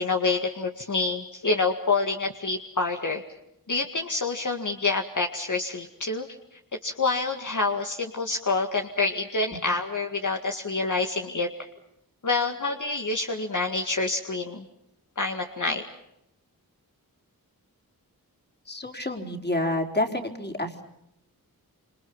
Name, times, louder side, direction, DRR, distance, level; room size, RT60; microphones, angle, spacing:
voice 1, 0.0-3.2 3.7-6.4 6.8-11.5 12.2-14.7 15.2-15.8, left 3 dB, 55° left, 3 dB, 2.1 m, -27 dB
voice 2, 18.7-20.8, left 1 dB, 25° left, 4 dB, 4.5 m, -29 dB
28.0 x 27.5 x 5.6 m, 0.83 s
wide cardioid pair, 55°, 37 cm